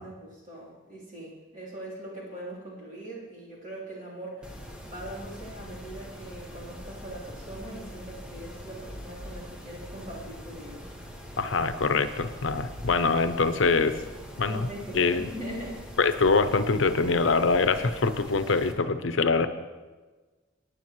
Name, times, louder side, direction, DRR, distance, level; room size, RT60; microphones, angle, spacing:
voice 1, 0.0-4.5 4.8-10.8 14.4-15.9, right 1 dB, 40° right, -6 dB, 3.5 m, -41 dB
Mechanisms, 4.4-18.7, equal, 5° right, 1.1 m, -43 dB
voice 2, 11.4-14.0 14.4-14.7 14.9-15.2 16.0-19.5, left 4 dB, 80° left, 11 dB, 0.7 m, -24 dB
19.0 x 9.3 x 3.1 m, 1.3 s
head